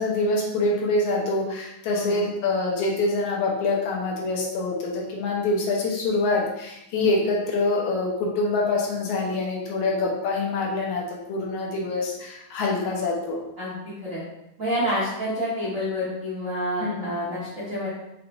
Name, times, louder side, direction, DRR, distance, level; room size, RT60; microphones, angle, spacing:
voice 1, 0.0-13.4 16.8-17.1, left 2 dB, 75° left, -2 dB, 2.1 m, -25 dB
voice 2, 14.6-17.9, equal, 75° right, -10 dB, 0.7 m, -28 dB
5.8 x 3.2 x 2.5 m, 0.88 s
omnidirectional pair, 3.5 m